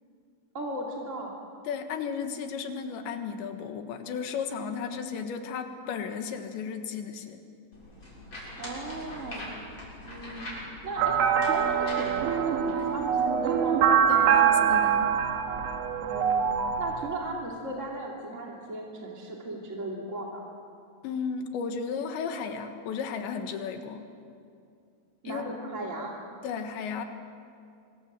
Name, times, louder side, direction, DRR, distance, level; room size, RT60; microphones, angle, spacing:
voice 1, 0.5-1.3 8.6-9.5 10.0-10.5 10.8-13.8 16.0-16.4 16.8-20.4 25.2-26.1, right 2 dB, 25° right, -1 dB, 1.9 m, -36 dB
voice 2, 1.7-7.4 14.1-15.2 21.0-24.1 25.3-25.4 26.4-27.0, left 6 dB, 75° left, 6 dB, 3.7 m, -34 dB
sound 1, 7.7-13.0, left 1 dB, 25° left, 7.2 m, -43 dB
sound 2, 11.0-17.1, right 8 dB, 75° right, 4.1 m, -24 dB
26.0 x 24.5 x 7.4 m, 2.4 s
omnidirectional pair, 5.4 m